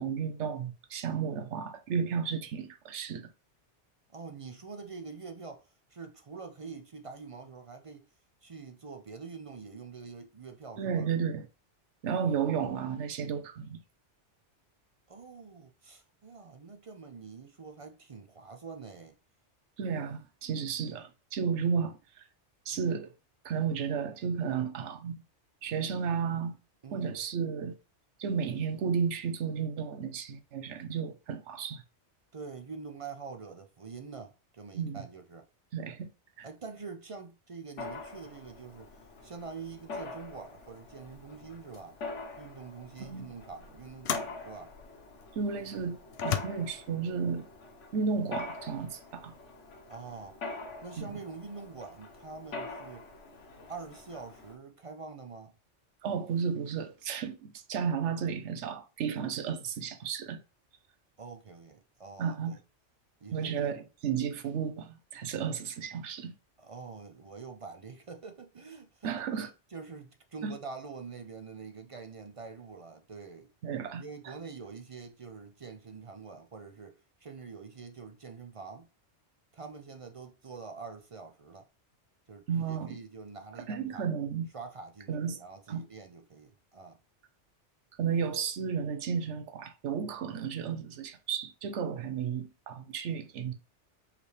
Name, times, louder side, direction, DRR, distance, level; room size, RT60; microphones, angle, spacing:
voice 1, 0.0-3.3 10.8-11.5 12.0-13.8 19.8-22.0 22.7-23.1 23.4-25.2 25.6-26.6 26.9-27.7 28.2-31.8 34.7-35.0 35.7-36.1 36.4-36.5 43.0-43.3 45.4-46.0 46.2-47.5 47.9-49.3 51.0-51.1 56.0-60.4 62.2-62.6 63.3-66.3 69.0-69.5 70.4-70.5 73.6-74.3 82.5-83.0 83.7-84.5 85.1-85.4 85.7-85.8 88.0-93.5, right 6 dB, 80° right, 1.0 m, -33 dB
voice 2, 4.1-8.0 8.4-11.1 15.1-19.2 26.8-27.2 32.3-35.5 36.4-38.9 39.2-41.9 42.4-44.7 49.9-50.4 50.8-53.1 53.7-55.5 61.2-62.6 63.2-63.8 66.6-69.1 69.4-73.5 74.0-78.9 79.5-81.7 82.3-84.1 84.5-87.0, right 5 dB, 45° right, 0.4 m, -45 dB
Mechanisms, 37.8-54.6, left 3 dB, 85° left, 1.4 m, -44 dB
sound 1, 41.1-41.3 41.7-42.0 43.0-43.1 44.0-44.4 45.2-45.3 46.1-46.4, left 9 dB, 65° left, 0.8 m, -34 dB
4.8 x 3.4 x 3.2 m
omnidirectional pair, 1.2 m